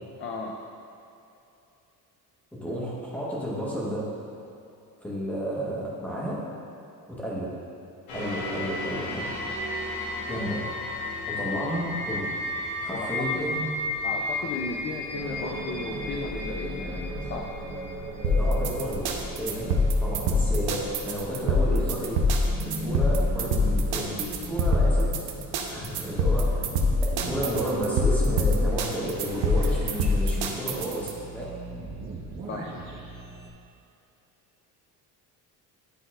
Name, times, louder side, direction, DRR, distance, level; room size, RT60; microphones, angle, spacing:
voice 1, 0.2-0.6 12.9-13.5 14.0-17.4 32.5-32.7, left 4 dB, 35° left, 0 dB, 0.4 m, -35 dB
voice 2, 2.5-4.0 5.0-6.4 7.1-7.5 8.1-9.2 10.3-10.6 11.3-12.3 12.8-13.6 18.2-19.1 19.4-22.2 22.6-25.2 25.7-26.7 27.2-31.4, equal, 5° left, -7 dB, 1.1 m, -32 dB
sound 1, 8.1-19.2 19.7-19.8, left 2 dB, 85° left, 1.4 m, -33 dB
sound 2, 15.1-33.5, right 1 dB, 50° right, 0.9 m, -38 dB
sound 3, 18.2-31.1, left 1 dB, 85° right, 0.8 m, -24 dB
11.0 x 4.0 x 2.4 m, 2.7 s
cardioid pair, 170°, 37 cm